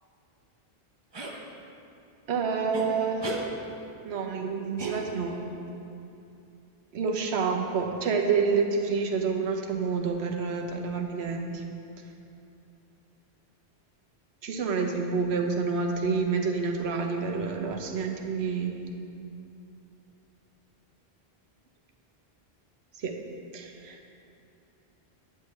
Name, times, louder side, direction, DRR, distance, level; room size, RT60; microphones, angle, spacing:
sound 1, 1.1-1.4 2.7-2.9 3.2-3.5 4.8-5.4, right 2 dB, 30° right, 0.6 m, -35 dB
voice 1, 2.3-3.4 4.0-5.4 6.9-11.6 14.4-18.7 22.9-23.2 23.5-24.1, right 5 dB, 80° right, 3 dB, 1.0 m, -28 dB
9.6 x 6.5 x 3.2 m, 2.7 s
omnidirectional pair, 1.1 m